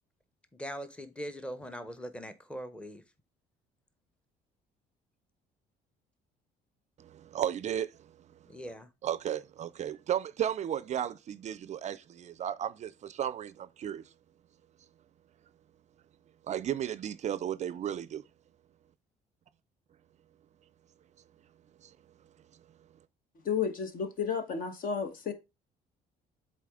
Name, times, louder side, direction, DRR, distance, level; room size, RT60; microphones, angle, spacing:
voice 1, 0.5-3.0 8.5-8.9, equal, 5° left, 0.8 m, -41 dB
voice 2, 7.0-7.9 9.0-14.0 16.5-18.2 21.8-21.9, right 10 dB, 45° right, 0.4 m, -34 dB
voice 3, 23.4-25.3, left 6 dB, 55° left, 1.2 m, -32 dB
7.5 x 4.0 x 3.6 m
cardioid pair, 110°, 17 cm